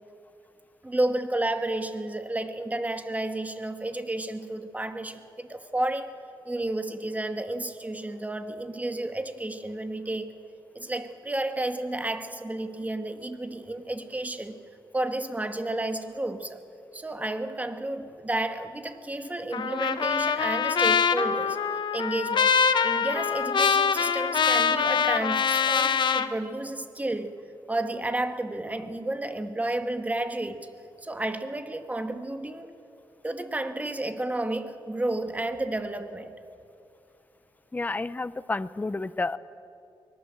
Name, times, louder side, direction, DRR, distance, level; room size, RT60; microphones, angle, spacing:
voice 1, 0.8-6.2 6.5-10.3 10.8-14.6 14.9-16.6 16.9-21.6 21.9-22.5 22.8-27.4 27.7-30.7 31.0-32.8 33.2-36.3, right 1 dB, 15° right, 8 dB, 1.9 m, -31 dB
Trumpet, 19.5-26.3, left 6 dB, 60° left, 1.1 m, -24 dB
voice 2, 37.7-39.4, left 3 dB, 20° left, 15 dB, 0.7 m, -30 dB
24.5 x 19.0 x 7.7 m, 2.6 s
cardioid pair, 70°, 9 cm